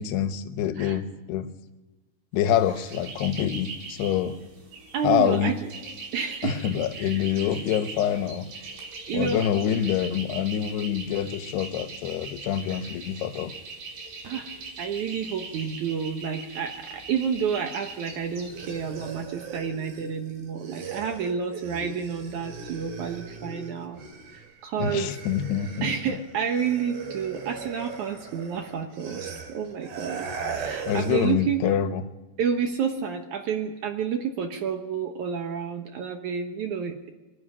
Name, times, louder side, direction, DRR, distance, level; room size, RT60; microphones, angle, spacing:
voice 1, 0.0-1.5 2.3-4.4 5.0-5.5 6.4-8.5 9.1-13.5 24.8-25.9 30.9-32.0, left 9 dB, 90° left, 11 dB, 3.1 m, -26 dB
sound 1, 2.4-19.1, right 4 dB, 90° right, 6.7 m, -41 dB
voice 2, 4.9-5.7 6.1-7.2 9.1-9.5 14.3-14.5 14.8-24.0 24.3-25.1 25.8-30.3 30.5-31.6 32.4-37.1, right 7 dB, 65° right, 6 dB, 2.1 m, -30 dB
sound 2, 18.3-24.5 24.8-31.3, right 5 dB, 45° right, 2.4 m, -39 dB
25.0 x 10.5 x 9.8 m, 1.2 s
omnidirectional pair, 4.6 m